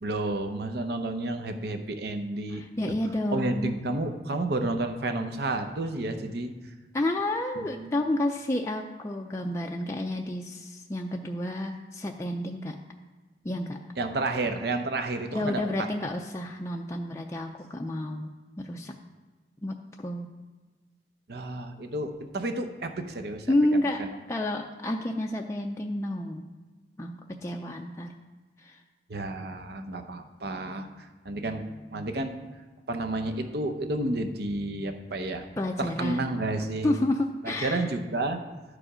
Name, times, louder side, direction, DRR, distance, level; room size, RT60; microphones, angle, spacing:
voice 1, 0.0-2.6 3.3-6.5 7.7-7.9 14.0-15.7 21.3-23.5 23.7-24.1 29.1-31.6 31.9-32.4 32.9-35.5 35.8-36.9 37.4-38.4, right 2 dB, 60° right, 6 dB, 0.7 m, -31 dB
voice 2, 2.5-3.8 6.9-12.8 13.4-13.8 15.3-18.3 18.6-18.9 19.6-20.3 23.5-26.5 27.0-27.1 27.4-28.1 28.6-28.8 35.6-36.3 36.8-37.9, left 1 dB, 15° left, 1 dB, 0.4 m, -30 dB
11.5 x 5.0 x 5.0 m, 1.4 s
head